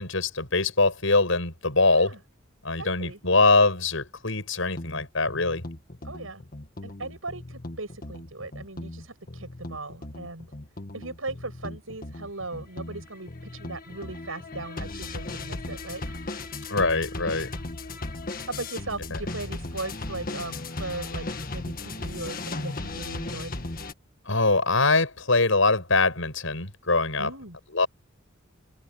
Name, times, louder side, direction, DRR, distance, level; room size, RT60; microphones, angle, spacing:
voice 1, 0.0-2.1 2.6-5.6 16.7-17.5 24.3-27.3 27.7-27.9, left 3 dB, 75° left, 6.2 m, -23 dB
voice 2, 2.8-3.2 6.0-6.4 6.8-10.5 10.9-16.2 18.5-21.3 21.5-23.5 27.2-27.6, right 2 dB, 85° right, 7.7 m, -38 dB
sound 1, 4.8-23.9, left 2 dB, 45° left, 1.7 m, -37 dB
head